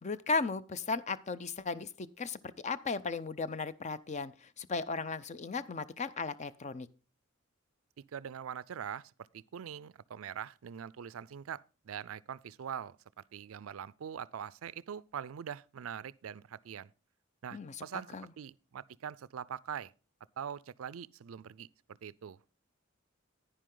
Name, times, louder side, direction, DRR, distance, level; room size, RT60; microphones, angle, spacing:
voice 1, 0.0-6.9 17.5-17.8 18.1-18.3, left 4 dB, 35° left, 0.6 m, -36 dB
voice 2, 8.1-13.0 13.3-16.9 17.4-19.9 20.4-21.7 22.0-22.6, right 8 dB, 85° right, 0.4 m, -43 dB
10.0 x 10.0 x 3.8 m
head